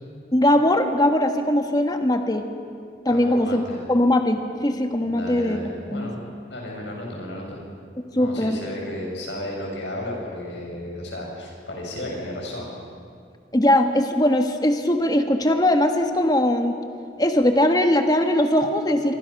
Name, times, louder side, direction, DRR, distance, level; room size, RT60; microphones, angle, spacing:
voice 1, 0.3-2.4 3.0-5.6 5.9-6.1 8.1-8.6 13.5-16.8 17.2-19.2, left 1 dB, 20° left, 5 dB, 1.4 m, -20 dB
voice 2, 3.1-3.8 5.0-6.2 6.4-7.6 8.2-12.8, left 1 dB, 80° left, -1 dB, 6.9 m, -33 dB
26.5 x 23.5 x 6.0 m, 2.2 s
head